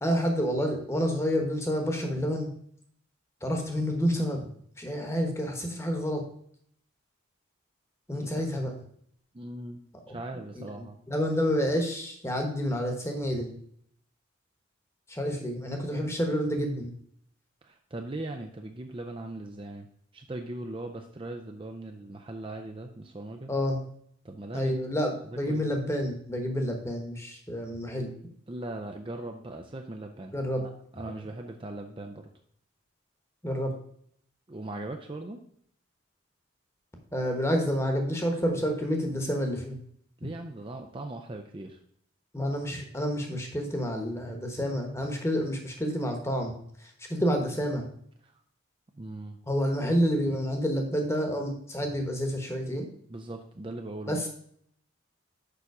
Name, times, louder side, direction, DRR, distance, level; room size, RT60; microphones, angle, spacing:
voice 1, 0.0-2.5 3.4-4.5 4.8-6.2 8.1-8.7 10.1-10.2 11.1-13.5 15.1-16.9 23.5-23.8 24.5-28.1 30.3-30.6 33.4-33.7 37.1-39.8 42.3-47.9 49.5-52.9 54.1-54.3, equal, 15° left, 3 dB, 1.2 m, -29 dB
voice 2, 8.1-8.4 9.3-11.0 17.6-19.9 20.1-23.5 24.2-24.8 25.5-25.7 28.5-32.3 34.5-35.4 40.2-41.8 48.2-48.4 48.9-49.4 53.1-54.3, right 2 dB, 25° right, 4 dB, 0.5 m, -39 dB
6.9 x 5.8 x 4.8 m, 0.66 s
head